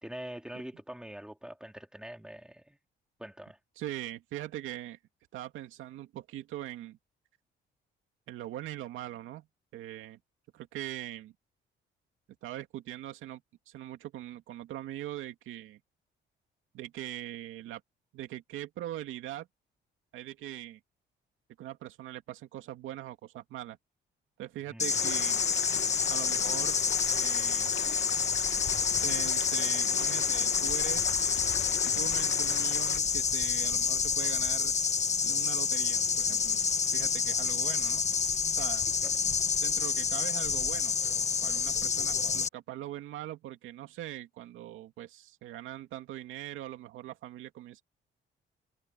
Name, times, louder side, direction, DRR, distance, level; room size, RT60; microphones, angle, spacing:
voice 1, 0.0-2.8 3.2-3.6 24.7-24.9 39.0-39.1, right 1 dB, 5° right, 3.6 m, -44 dB
voice 2, 3.8-5.0 5.3-7.0 8.3-9.5 9.7-10.2 10.5-11.3 12.4-15.8 16.7-17.8 18.1-19.5 20.1-20.8 21.6-23.8 24.4-25.4 26.1-26.8 27.1-27.8 29.0-31.4 31.9-34.7 35.2-36.6 36.9-38.0 38.6-38.8 39.6-47.8, right 13 dB, 90° right, 2.5 m, -41 dB
sound 1, 24.8-42.5, left 5 dB, 35° left, 1.2 m, -28 dB
sound 2, 24.9-33.0, left 10 dB, 65° left, 1.4 m, -41 dB
cardioid pair, 90°, 20 cm